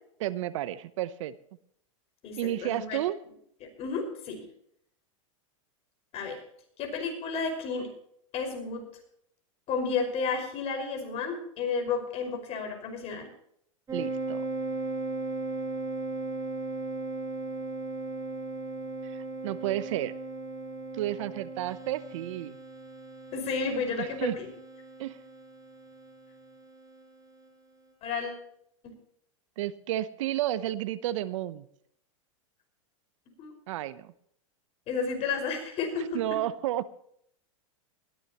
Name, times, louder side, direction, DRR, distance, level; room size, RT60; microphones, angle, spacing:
voice 1, 0.2-1.4 2.4-3.2 13.9-14.4 19.0-20.1 20.9-22.6 24.0-24.4 25.0-25.2 29.6-31.7 33.7-34.1 36.1-36.9, right 13 dB, 65° right, 16 dB, 0.9 m, -32 dB
voice 2, 2.2-3.0 3.8-4.4 6.1-6.4 6.8-7.9 8.3-8.8 9.7-13.3 23.3-24.5 28.0-28.4 28.8-28.9 33.4-33.5 34.9-36.2, left 5 dB, 40° left, 5 dB, 5.5 m, -32 dB
sound 1, 13.9-27.0, right 2 dB, 20° right, 5.8 m, -37 dB
20.5 x 14.5 x 3.0 m, 0.69 s
hypercardioid pair, 120°, 17 cm